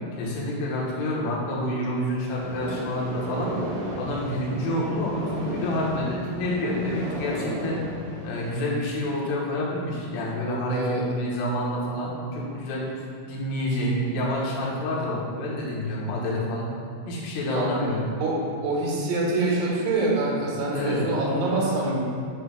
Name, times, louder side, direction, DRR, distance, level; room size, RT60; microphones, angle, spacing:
voice 1, 0.2-3.5 4.0-7.8 8.2-16.7 17.1-18.1 20.7-21.0, left 1 dB, 75° left, -5 dB, 3.5 m, -28 dB
sound 1, 2.3-8.7, right 1 dB, 70° right, 3.0 m, -34 dB
voice 2, 10.7-11.0 17.5-17.7 18.2-18.4 18.6-22.0, right 2 dB, 85° right, -5 dB, 4.0 m, -25 dB
8.0 x 6.9 x 2.2 m, 2.4 s
omnidirectional pair, 5.9 m